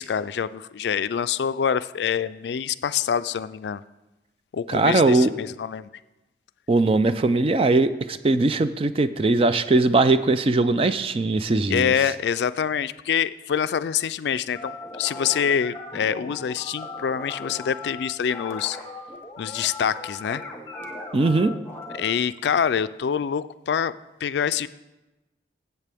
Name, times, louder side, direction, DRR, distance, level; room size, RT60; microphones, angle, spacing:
voice 1, 0.0-3.8 4.5-5.9 11.7-18.8 19.4-20.4 21.9-23.9 24.2-24.7, left 8 dB, 75° left, 15 dB, 0.3 m, -25 dB
voice 2, 4.7-5.3 6.7-11.9 21.1-21.5, right 2 dB, 30° right, 12 dB, 0.3 m, -20 dB
sound 1, 14.6-22.1, left 3 dB, 15° left, 1.1 m, -38 dB
14.0 x 8.2 x 3.5 m, 1.0 s
head